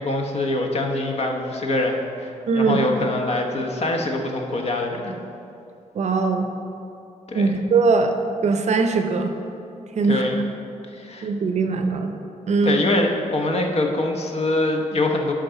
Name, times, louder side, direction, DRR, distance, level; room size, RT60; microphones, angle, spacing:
voice 1, 0.0-5.1 7.3-7.5 10.1-10.4 10.9-11.3 12.6-15.3, left 2 dB, 55° left, 2 dB, 1.0 m, -24 dB
voice 2, 2.5-2.8 5.9-6.5 7.3-8.1 8.4-9.3 10.0-10.3 11.2-12.2 12.5-12.8, right 4 dB, 60° right, 6 dB, 0.7 m, -20 dB
10.5 x 3.8 x 5.7 m, 2.7 s
cardioid pair, 110°, 13 cm